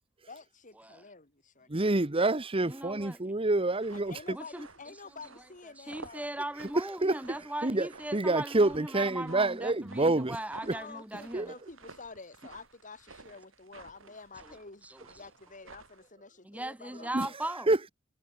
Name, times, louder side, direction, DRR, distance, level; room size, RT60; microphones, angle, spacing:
voice 1, 0.3-1.7 3.9-6.2 10.7-17.4, left 4 dB, 40° left, 4.3 m, -49 dB
voice 2, 1.7-4.1 7.0-7.2 7.6-10.4 10.6-10.8 11.3-11.5 17.1-17.3 17.7-17.9, right 2 dB, 30° right, 1.1 m, -27 dB
voice 3, 2.7-3.4 4.3-4.7 5.8-11.5 14.9-15.0 16.5-17.7, right 1 dB, 5° right, 2.0 m, -39 dB
sound 1, 3.7-16.1, right 3 dB, 85° right, 5.7 m, -54 dB
head